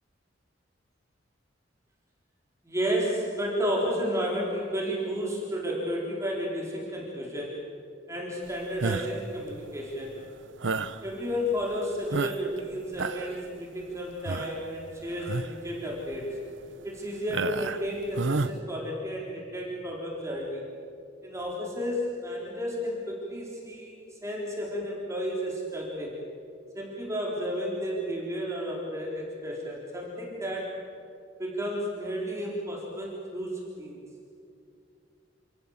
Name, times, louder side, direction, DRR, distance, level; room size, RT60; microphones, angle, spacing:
voice 1, 2.6-7.6 8.1-10.2 11.0-16.4 16.8-20.6 21.2-26.1 26.7-30.8 31.4-34.0, equal, 15° right, -3 dB, 4.1 m, -32 dB
sound 1, 8.8-9.3 10.6-11.0 11.6-11.7 12.1-12.6 12.9-13.4 14.3-14.6 15.2-15.6 16.1-16.2 17.3-17.9 18.2-18.5, right 3 dB, 85° right, 0.9 m, -30 dB
28.5 x 27.0 x 7.3 m, 2.5 s
head